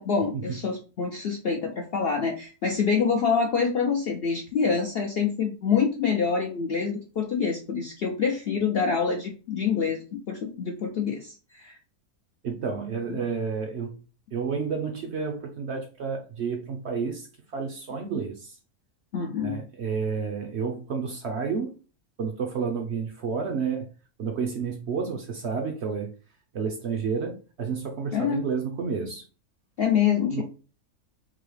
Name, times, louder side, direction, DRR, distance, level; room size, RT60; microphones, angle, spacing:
voice 1, 0.0-11.8 19.1-19.6 28.1-28.5 29.8-30.4, left 6 dB, 65° left, 0.6 m, -26 dB
voice 2, 12.4-14.0 14.3-17.3 17.5-18.5 19.4-21.7 22.2-23.9 24.2-26.1 26.5-29.2 30.3-30.4, right 5 dB, 60° right, 0.8 m, -30 dB
3.8 x 2.7 x 3.2 m
omnidirectional pair, 1.6 m